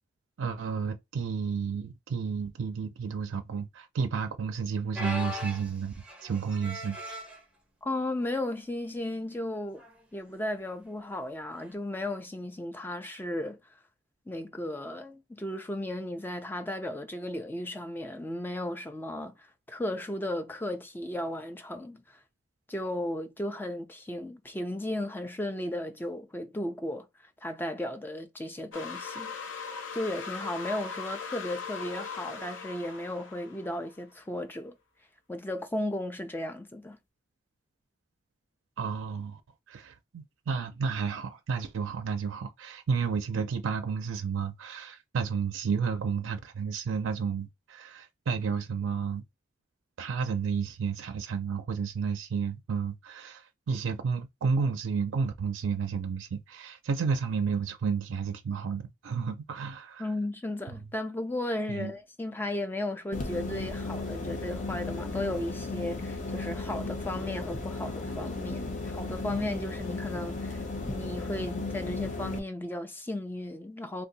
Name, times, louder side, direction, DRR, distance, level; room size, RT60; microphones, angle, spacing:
voice 1, 0.4-7.0 38.8-39.4 39.7-49.2 50.0-60.1 61.7-61.9, right 5 dB, 90° right, 0.4 m, -31 dB
sound 1, 4.9-7.4 8.2-8.4 8.8-8.9 9.8-10.0 11.6-11.7, left 1 dB, 5° right, 0.7 m, -39 dB
voice 2, 7.8-9.8 10.1-13.6 14.3-22.2 22.7-27.1 27.4-29.3 29.9-34.8 35.3-37.0 60.0-74.1, left 1 dB, 10° left, 0.3 m, -35 dB
sound 2, 28.7-34.0, left 5 dB, 90° left, 0.6 m, -40 dB
sound 3, 63.1-72.4, left 3 dB, 40° left, 0.7 m, -35 dB
2.6 x 2.2 x 3.9 m
head